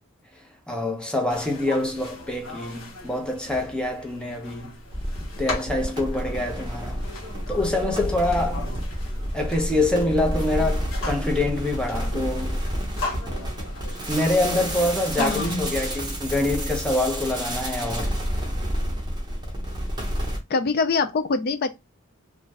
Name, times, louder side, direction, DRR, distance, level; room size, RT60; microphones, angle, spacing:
voice 1, 0.7-4.7 5.4-7.0 7.5-8.7 9.3-12.6 14.1-18.1, left 2 dB, 5° left, 0.6 m, -25 dB
sound 1, 1.3-15.6, left 2 dB, 85° left, 1.1 m, -38 dB
sound 2, 4.9-20.4, equal, 20° right, 0.9 m, -30 dB
voice 2, 15.2-15.7 20.5-21.7, left 4 dB, 50° left, 0.4 m, -24 dB
2.5 x 2.3 x 3.2 m
head